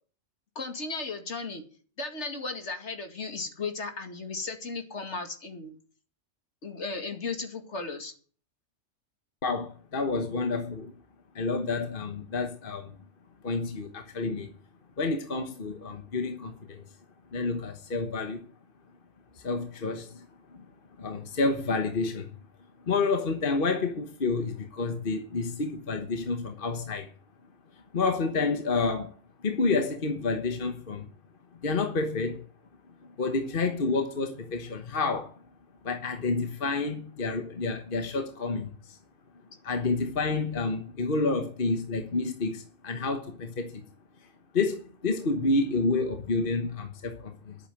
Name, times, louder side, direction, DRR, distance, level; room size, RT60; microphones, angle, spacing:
voice 1, 0.6-1.6 2.0-5.8 6.6-8.1, left 3 dB, 65° left, 2.5 m, -35 dB
voice 2, 9.4-10.9 11.3-13.0 13.4-14.5 15.0-16.8 17.3-18.4 19.4-20.3 20.5-20.6 21.0-22.3 22.9-27.1 27.9-29.1 29.4-31.1 31.6-32.4 33.2-35.4 35.8-39.0 39.6-43.8 44.5-47.6, left 3 dB, 45° left, 1.4 m, -29 dB
11.0 x 8.7 x 9.1 m
omnidirectional pair, 1.2 m